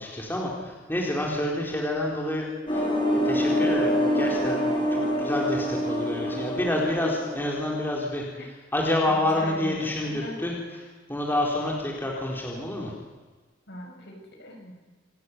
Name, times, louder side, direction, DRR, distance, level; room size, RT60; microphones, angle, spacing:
voice 1, 0.0-4.6 4.9-10.8 11.1-12.9, left 1 dB, 10° left, -2 dB, 4.0 m, -28 dB
sound 1, 2.7-8.0, equal, 25° left, 8.0 m, -26 dB
voice 2, 9.1-10.5 13.7-14.8, left 1 dB, 60° left, 0 dB, 7.8 m, -38 dB
27.0 x 14.5 x 9.5 m, 1.3 s
head